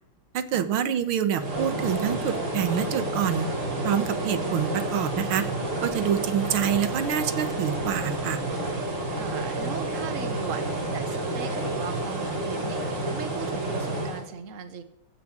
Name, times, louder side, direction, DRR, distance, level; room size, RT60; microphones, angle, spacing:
voice 1, 0.3-3.5 3.8-5.5 5.8-8.4, right 9 dB, 85° right, 12 dB, 2.0 m, -26 dB
sound 1, 1.3-14.3, right 2 dB, 60° right, 4.2 m, -30 dB
voice 2, 9.2-12.8 13.1-14.8, right 6 dB, 40° right, 11 dB, 1.6 m, -37 dB
15.0 x 10.0 x 7.4 m, 0.79 s
omnidirectional pair, 2.2 m